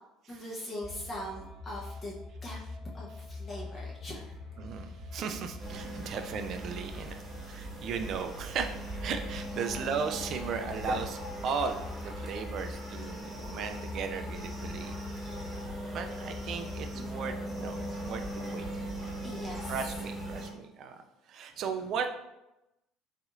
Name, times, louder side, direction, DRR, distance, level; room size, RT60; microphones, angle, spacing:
voice 1, 0.3-2.1 2.4-2.6 2.9-4.3 5.7-6.1 11.3-11.4 16.4-16.6 16.9-17.2 19.2-19.8 20.3-20.4 21.5-21.9, left 1 dB, 30° left, -4 dB, 0.8 m, -42 dB
sound 1, 0.8-20.4, left 2 dB, 80° left, 1.5 m, -45 dB
voice 2, 4.6-7.2 7.5-8.7 9.0-14.9 15.9-18.7 19.7-21.0 21.3-22.1, right 6 dB, 50° right, 6 dB, 0.4 m, -36 dB
sound 2, 5.6-20.5, right 1 dB, 20° right, 1.2 m, -40 dB
4.1 x 2.7 x 2.4 m, 0.93 s
figure-of-eight pair, 60°, 0 cm